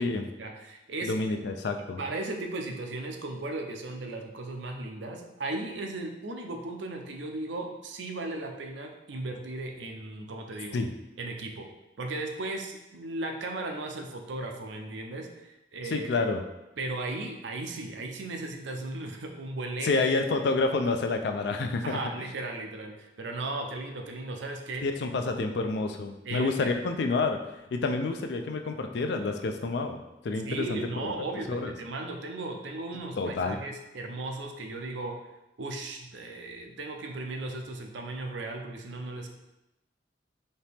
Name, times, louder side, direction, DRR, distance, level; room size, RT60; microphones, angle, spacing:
voice 1, 0.4-1.1 2.0-10.8 11.2-11.7 12.0-16.3 16.8-20.0 20.3-20.5 21.8-24.8 26.2-26.7 30.4-35.2 35.6-39.3, right 2 dB, 70° right, 3 dB, 0.6 m, -36 dB
voice 2, 1.0-2.0 10.7-10.9 15.9-16.4 19.8-22.0 24.8-27.4 27.7-30.0 30.2-31.1 31.5-31.7 33.2-33.6, left 3 dB, 60° left, 5 dB, 0.4 m, -28 dB
4.2 x 2.8 x 3.4 m, 0.95 s
head